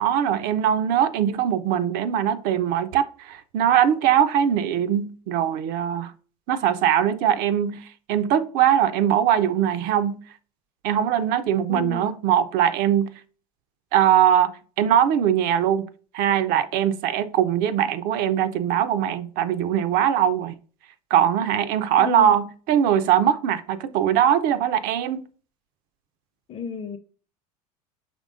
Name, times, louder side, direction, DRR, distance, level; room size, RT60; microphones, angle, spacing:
voice 1, 0.0-6.1 6.5-10.2 10.8-13.1 13.9-14.5 14.8-15.9 16.1-20.5 21.1-25.3, right 10 dB, 50° right, 0.4 m, -21 dB
voice 2, 11.7-12.1 22.0-22.4 26.5-27.0, left 7 dB, 30° left, 0.5 m, -32 dB
5.0 x 3.2 x 2.5 m
hypercardioid pair, 75°, 20 cm